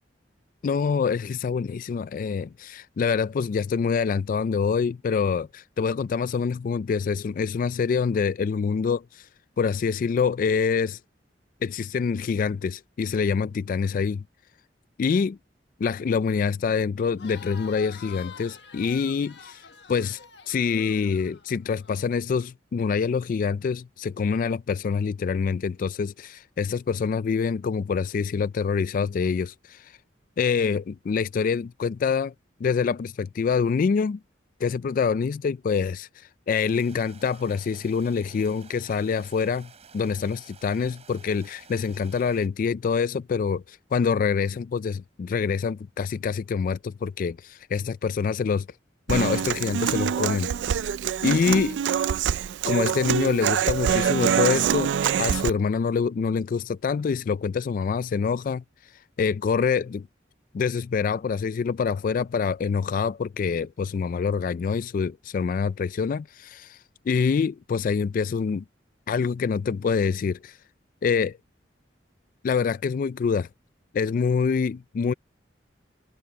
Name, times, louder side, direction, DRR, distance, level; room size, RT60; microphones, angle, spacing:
voice 1, 0.6-9.3 9.6-11.0 11.6-14.2 15.0-15.4 15.8-20.2 20.5-30.0 30.4-32.3 32.6-34.2 34.6-48.7 49.1-50.9 51.2-51.8 52.7-58.6 59.2-60.1 60.5-68.6 69.1-70.6 71.0-71.3 72.4-73.5 73.9-75.1, left 5 dB, 50° left, 0.3 m, -26 dB
Crowd, 17.0-21.9, left 6 dB, 70° left, 1.6 m, -46 dB
sound 1, 36.5-42.5, right 5 dB, 35° right, 5.0 m, -52 dB
Human voice / Acoustic guitar, 49.1-55.5, right 8 dB, 80° right, 0.3 m, -25 dB
head